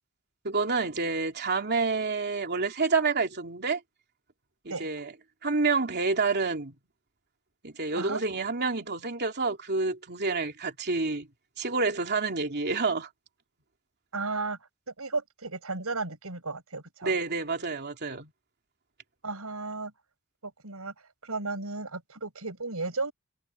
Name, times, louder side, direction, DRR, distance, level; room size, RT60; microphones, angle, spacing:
voice 1, 0.4-3.8 4.6-5.1 5.4-6.7 7.6-11.3 11.6-13.1 17.0-18.3, right 4 dB, 50° right, 3.1 m, -28 dB
voice 2, 14.1-14.6 15.0-17.1 19.2-19.9 20.4-20.9 21.2-23.1, right 3 dB, 75° right, 6.3 m, -34 dB
head